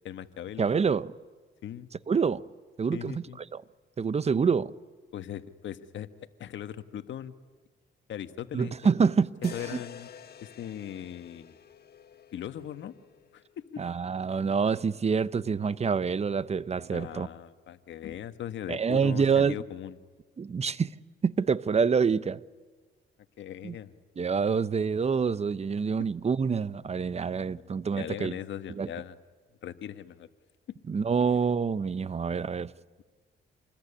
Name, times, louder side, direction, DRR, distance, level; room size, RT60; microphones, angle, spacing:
voice 1, 0.0-0.7 1.6-1.9 2.9-3.4 5.1-6.1 6.4-7.3 8.1-8.7 9.5-10.1 10.4-11.6 12.3-12.9 13.3-13.8 16.9-20.0 23.4-23.9 27.5-29.2 29.6-30.3, left 10 dB, 70° left, 1.5 m, -39 dB
voice 2, 0.6-1.1 2.1-2.4 2.8-3.6 4.0-4.7 8.5-9.8 13.8-17.3 18.7-19.6 20.4-20.9 21.2-22.4 23.6-23.8 24.2-28.4 28.8-28.9 30.9-32.7, right 5 dB, 30° right, 0.8 m, -27 dB
sound 1, 9.4-13.5, left 7 dB, 50° left, 1.5 m, -49 dB
27.5 x 21.0 x 10.0 m
cardioid pair, 90°, 20 cm